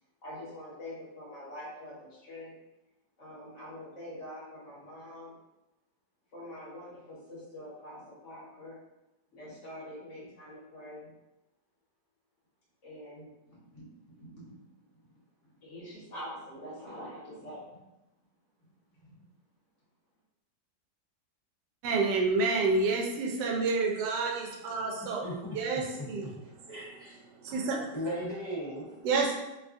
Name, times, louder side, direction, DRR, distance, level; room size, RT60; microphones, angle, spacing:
voice 1, 0.2-2.5 3.2-5.3 6.3-8.8 9.3-11.1 12.8-14.7 15.0-15.1 15.4-17.8 18.6-19.3, left 1 dB, 50° left, -8 dB, 1.2 m, -45 dB
voice 2, 21.8-26.3 27.4-27.9 29.0-29.4, right 3 dB, 85° right, 0 dB, 1.2 m, -29 dB
voice 3, 25.0-25.6 26.0-26.1 26.7-27.2 27.9-28.9, equal, 35° left, -11 dB, 0.4 m, -37 dB
3.0 x 2.3 x 2.4 m, 0.96 s
omnidirectional pair, 1.9 m